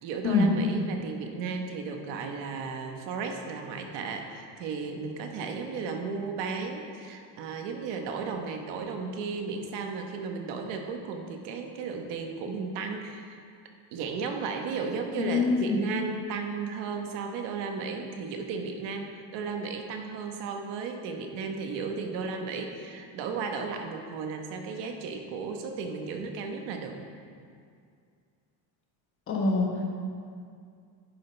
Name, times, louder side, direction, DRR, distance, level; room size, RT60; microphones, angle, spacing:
voice 1, 0.0-13.4 13.9-27.0, right 4 dB, 75° right, 4 dB, 1.3 m, -34 dB
voice 2, 15.1-15.8 29.3-29.7, left 3 dB, 30° left, 0 dB, 1.2 m, -24 dB
11.0 x 10.5 x 3.4 m, 2.2 s
cardioid pair, 180°, 42 cm